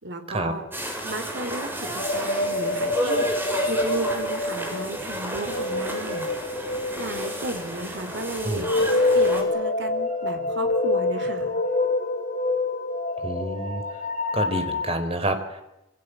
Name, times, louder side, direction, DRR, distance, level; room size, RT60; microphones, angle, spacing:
voice 1, 0.0-0.6 1.0-3.3 3.7-6.3 6.9-8.7 9.1-11.6, right 2 dB, 65° right, 7 dB, 3.9 m, -34 dB
sound 1, 0.7-9.4, equal, 10° right, 6.7 m, -32 dB
sound 2, 2.0-7.7 8.4-14.9, left 2 dB, 45° left, 5.0 m, -26 dB
voice 2, 13.2-13.8 14.3-15.6, right 1 dB, 30° right, 8 dB, 4.4 m, -28 dB
27.0 x 26.0 x 7.9 m, 0.92 s
head